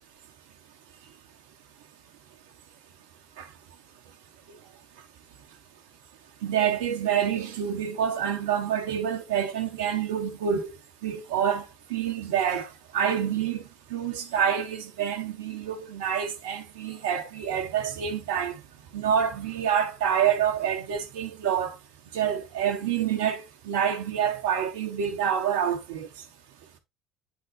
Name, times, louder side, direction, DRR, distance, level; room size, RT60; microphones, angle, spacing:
voice 1, 6.4-10.7 11.0-13.6 13.9-18.6 18.9-21.7 22.1-26.1, right 8 dB, 80° right, 1.3 m, -27 dB
9.2 x 4.2 x 4.1 m
hypercardioid pair, 70°, 0 cm